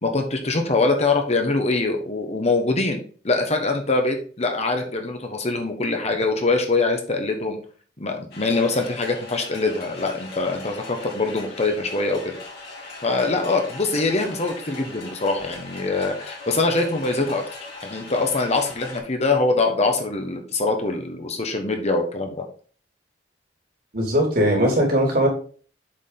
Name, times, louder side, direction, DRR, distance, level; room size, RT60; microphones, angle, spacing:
voice 1, 0.0-7.6 8.0-12.4 13.0-17.4 17.8-22.4, left 3 dB, 40° left, 4 dB, 1.3 m, -23 dB
sound 1, 8.3-19.0, left 3 dB, 65° left, 3.2 m, -39 dB
voice 2, 23.9-25.3, equal, 55° right, 0 dB, 3.1 m, -19 dB
7.6 x 4.9 x 4.1 m, 0.42 s
head